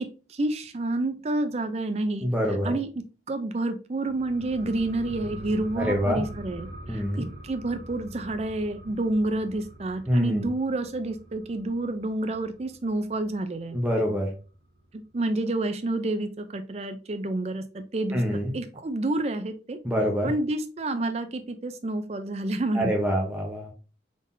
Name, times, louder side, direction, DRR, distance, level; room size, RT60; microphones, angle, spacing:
voice 1, 0.0-2.3 2.6-13.8 14.9-18.2 18.5-19.8 20.2-22.9, right 2 dB, 35° right, 9 dB, 0.4 m, -29 dB
voice 2, 2.2-2.7 5.8-6.2 6.9-7.3 10.1-10.5 13.7-14.3 18.1-18.5 19.8-20.3 22.7-23.7, equal, 10° right, 0 dB, 0.8 m, -25 dB
sound 1, 4.1-13.2 13.5-13.6, right 1 dB, 70° right, 1.0 m, -43 dB
3.7 x 3.7 x 2.6 m, 0.34 s
head